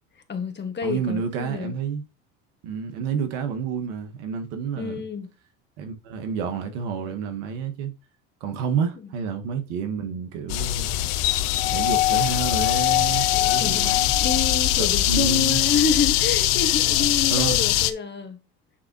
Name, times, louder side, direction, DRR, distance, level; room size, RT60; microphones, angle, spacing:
voice 1, 0.3-1.7 4.8-5.3 13.6-18.4, left 6 dB, 30° left, 1.6 m, -28 dB
voice 2, 0.8-2.0 2.6-5.0 5.8-7.9 8.4-11.0 11.7-14.1 14.8-15.6 17.3-17.6, right 6 dB, 80° right, 1.7 m, -29 dB
sound 1, 10.5-17.9, left 14 dB, 80° left, 0.8 m, -21 dB
9.5 x 3.8 x 2.9 m
supercardioid pair, 85°, 36 cm